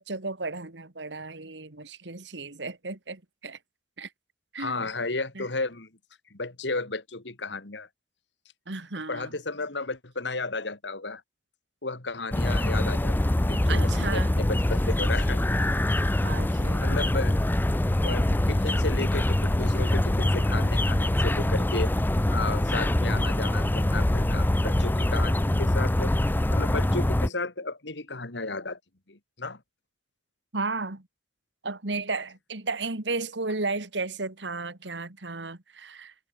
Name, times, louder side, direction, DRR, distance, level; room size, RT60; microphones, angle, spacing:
voice 1, 0.0-3.6 4.0-4.1 4.5-4.9 5.3-5.5 8.7-9.3 12.5-12.6 13.7-14.4 16.2-16.9 23.1-23.3 30.5-31.1 31.6-36.1, right 3 dB, 85° right, 2.2 m, -34 dB
voice 2, 4.6-5.9 6.3-7.9 9.1-11.2 11.8-15.5 16.8-17.4 18.0-21.9 22.3-26.1 26.5-28.8 29.1-29.6, left 3 dB, 85° left, 2.5 m, -33 dB
sound 1, 12.3-27.3, left 1 dB, 10° left, 0.5 m, -24 dB
head